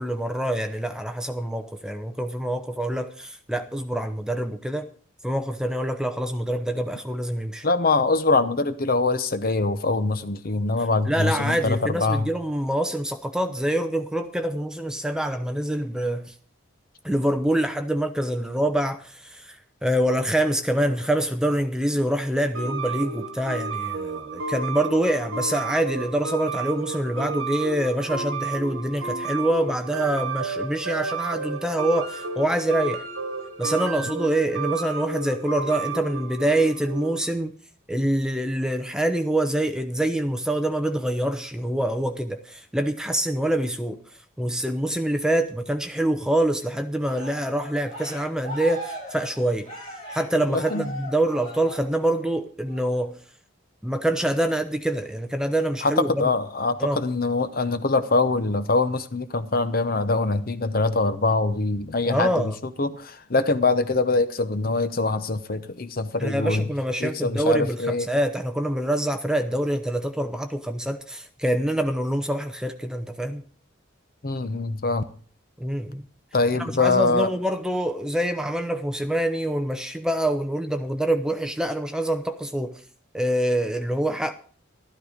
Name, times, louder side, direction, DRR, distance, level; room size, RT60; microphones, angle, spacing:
voice 1, 0.0-4.9 5.2-7.7 11.1-16.3 17.0-33.0 33.6-37.5 37.9-49.7 50.1-53.2 53.8-56.3 56.8-57.0 62.0-62.6 66.2-73.4 75.6-76.0 76.6-82.8 83.1-84.3, right 1 dB, 5° right, 0.8 m, -25 dB
voice 2, 7.6-12.3 50.5-50.9 55.8-62.5 62.8-66.6 67.0-68.1 74.2-75.0 76.3-77.3, left 3 dB, 45° left, 0.8 m, -23 dB
sound 1, 22.5-37.3, right 4 dB, 85° right, 1.5 m, -31 dB
Cheering, 47.0-52.2 52.7-53.1, equal, 25° left, 5.3 m, -39 dB
12.5 x 12.5 x 5.1 m
head